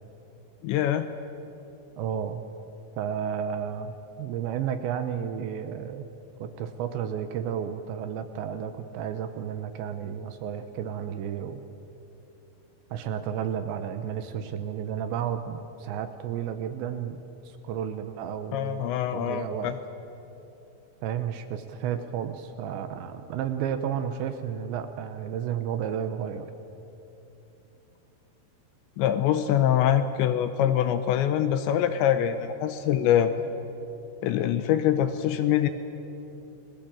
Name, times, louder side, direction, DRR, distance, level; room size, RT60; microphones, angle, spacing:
voice 1, 0.6-1.1 18.5-19.8 29.0-33.3 34.2-35.7, left 10 dB, 80° left, 9 dB, 2.9 m, -24 dB
voice 2, 2.0-2.4 3.0-6.1 6.4-11.6 12.9-17.2 17.5-19.7 21.0-26.5, right 8 dB, 80° right, 9 dB, 2.9 m, -32 dB
29.5 x 21.0 x 7.6 m, 2.9 s
omnidirectional pair, 5.8 m